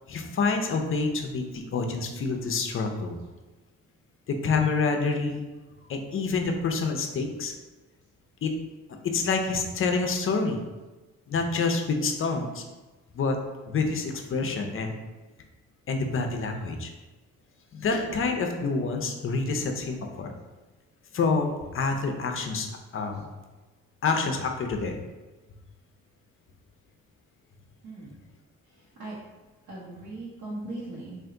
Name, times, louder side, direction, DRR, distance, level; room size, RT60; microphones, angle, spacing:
voice 1, 0.1-3.2 4.3-5.4 5.9-7.5 8.4-8.5 9.1-10.6 11.3-12.6 13.1-13.4 13.7-15.0 15.9-16.9 17.7-20.3 21.1-22.7 22.9-23.3 24.0-25.0, left 4 dB, 45° left, 4 dB, 0.6 m, -27 dB
voice 2, 27.8-28.1 28.7-29.2 29.7-31.2, right 2 dB, 80° right, -7 dB, 1.1 m, -39 dB
3.3 x 2.6 x 3.7 m, 1.2 s
cardioid pair, 90°, 30 cm